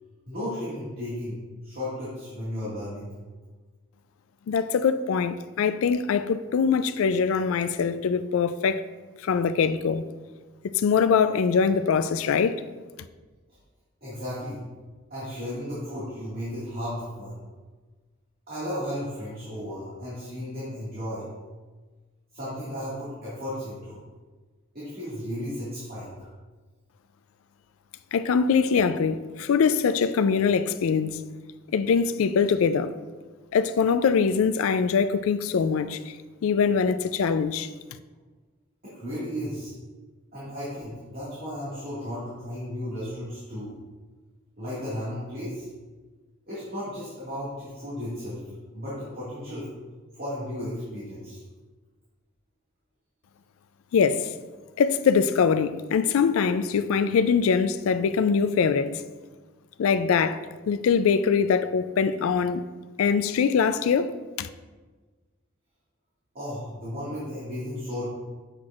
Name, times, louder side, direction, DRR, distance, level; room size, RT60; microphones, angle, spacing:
voice 1, 0.3-3.1 14.0-14.6 15.1-17.4 18.5-21.3 22.3-24.0 24.7-26.3 38.8-39.7 40.3-43.8 44.6-45.7 46.5-48.4 48.7-49.7 50.1-51.4 66.3-68.1, equal, 45° right, 1.9 m, -34 dB
voice 2, 4.5-8.8 9.2-10.0 10.6-12.6 28.1-31.2 31.7-32.9 33.5-36.1 36.4-37.7 53.9-54.3 54.8-59.0 59.8-62.6 63.0-64.5, left 6 dB, 75° left, 0.3 m, -23 dB
8.0 x 5.9 x 2.4 m
head